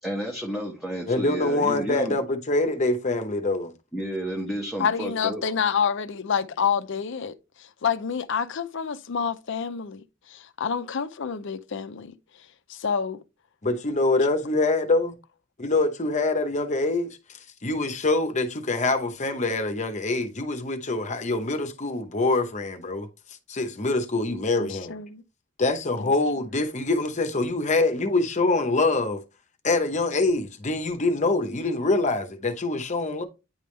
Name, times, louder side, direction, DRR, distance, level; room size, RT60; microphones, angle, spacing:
voice 1, 0.0-2.1 3.9-5.4, right 1 dB, ahead, 0.9 m, -31 dB
voice 2, 1.1-3.7 13.6-15.1 15.6-24.9 25.6-29.2 29.6-33.2, left 2 dB, 35° left, 0.8 m, -25 dB
voice 3, 4.8-12.2 12.7-13.2 24.6-25.2 26.0-26.1, left 6 dB, 65° left, 0.5 m, -28 dB
9.5 x 3.4 x 3.2 m
head